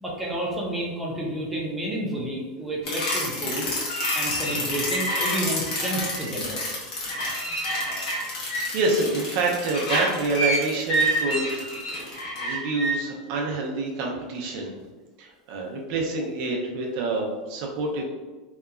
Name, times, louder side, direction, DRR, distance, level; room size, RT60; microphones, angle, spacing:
voice 1, 0.0-3.7 4.1-6.6, right 1 dB, 5° right, -5 dB, 0.5 m, -30 dB
sound 1, 2.8-12.9, equal, 70° left, 1.0 m, -27 dB
voice 2, 8.0-8.4 8.7-14.7 15.2-18.0, right 2 dB, 55° right, -1 dB, 0.5 m, -27 dB
2.8 x 2.2 x 2.3 m, 1.2 s
supercardioid pair, 140°, 4 cm